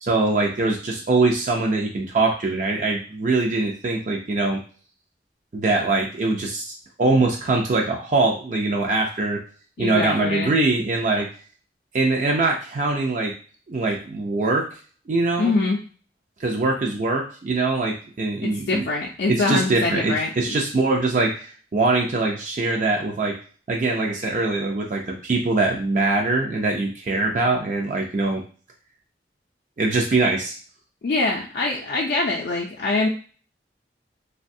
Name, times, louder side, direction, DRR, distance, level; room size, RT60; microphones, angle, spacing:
voice 1, 0.0-4.6 5.5-6.7 7.0-9.4 9.8-11.3 11.9-13.3 13.7-14.7 15.1-15.5 16.4-18.8 19.3-23.4 23.7-28.4 29.8-30.6, right 3 dB, 45° right, 0 dB, 0.4 m, -22 dB
voice 2, 9.8-10.5 15.4-15.8 18.4-20.6 31.0-33.1, left 3 dB, 60° left, -1 dB, 0.4 m, -24 dB
3.2 x 2.2 x 2.6 m, 0.40 s
head